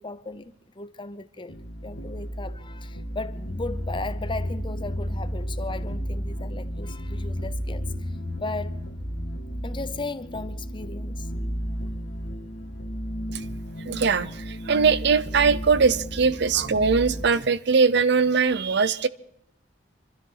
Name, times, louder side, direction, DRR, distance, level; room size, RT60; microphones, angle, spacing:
voice 1, 0.0-1.6 1.8-8.1 8.4-8.8 9.6-11.3, left 3 dB, 25° left, 0.7 m, -36 dB
sound 1, 1.5-17.2, equal, 70° left, 2.0 m, -33 dB
voice 2, 13.9-19.1, right 5 dB, 65° right, 0.6 m, -21 dB
26.0 x 13.0 x 3.9 m
head